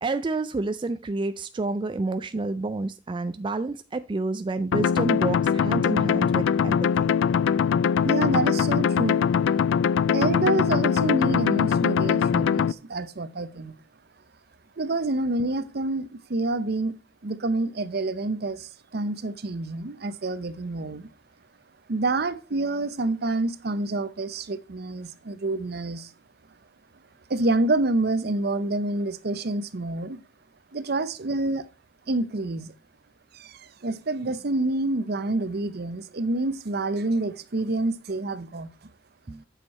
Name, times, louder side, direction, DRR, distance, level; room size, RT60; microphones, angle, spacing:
voice 1, 0.0-7.1 39.3-39.4, right 3 dB, 25° right, 0.3 m, -29 dB
sound 1, 4.7-12.7, left 7 dB, 85° left, 0.3 m, -22 dB
voice 2, 8.0-9.2 10.1-13.7 14.8-17.0 17.2-21.1 21.9-26.1 27.3-30.2 30.7-31.7 32.1-32.7 33.3-38.7, right 2 dB, 55° right, 0.7 m, -27 dB
9.0 x 6.5 x 4.2 m
head